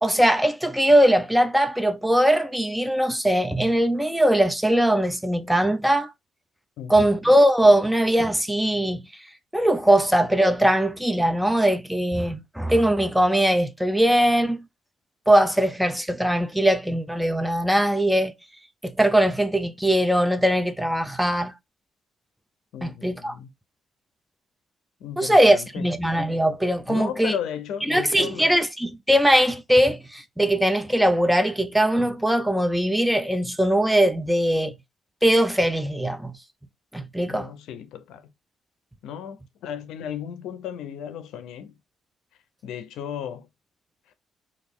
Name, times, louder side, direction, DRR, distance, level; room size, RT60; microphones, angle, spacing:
voice 1, 0.0-6.1 6.9-9.1 9.5-14.7 15.3-18.3 18.8-21.5 22.8-23.4 25.2-27.4 27.9-34.7 35.2-36.3 36.9-37.5, right 1 dB, 5° right, 0.5 m, -20 dB
voice 2, 6.8-7.3 22.7-23.5 25.0-25.9 26.9-28.5 37.3-38.3 39.0-41.8 42.6-43.5, left 9 dB, 85° left, 0.5 m, -35 dB
3.0 x 2.5 x 3.5 m
cardioid pair, 90°, 0 cm